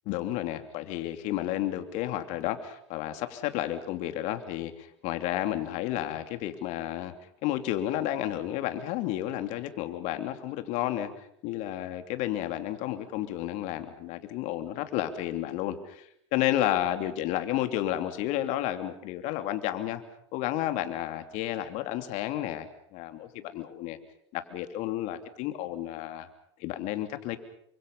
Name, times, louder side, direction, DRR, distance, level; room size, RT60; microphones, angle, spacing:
voice 1, 0.1-7.1 7.4-11.1 11.4-20.0 20.3-22.7 22.9-24.0 24.3-26.3 26.6-27.4, left 13 dB, 55° left, 8 dB, 3.0 m, -31 dB
29.0 x 25.0 x 5.5 m, 0.70 s
hypercardioid pair, 100°, 15 cm